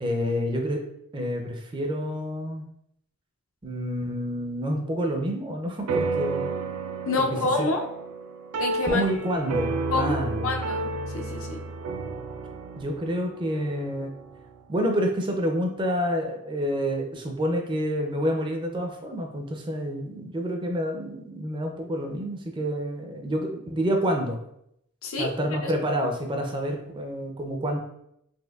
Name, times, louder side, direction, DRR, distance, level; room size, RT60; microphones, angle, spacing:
voice 1, 0.0-0.8 1.1-2.6 3.6-6.5 7.6-7.7 8.8-10.5 12.8-14.1 14.7-24.4 25.2-27.8, equal, 20° right, 3 dB, 0.4 m, -28 dB
sound 1, 5.9-14.6, right 3 dB, 85° right, 0.4 m, -31 dB
voice 2, 7.1-7.9 8.6-9.0 9.9-10.1 10.4-11.6 25.0-25.3 25.6-25.7, left 3 dB, 65° left, 3 dB, 0.5 m, -27 dB
4.3 x 2.6 x 2.3 m, 0.75 s
head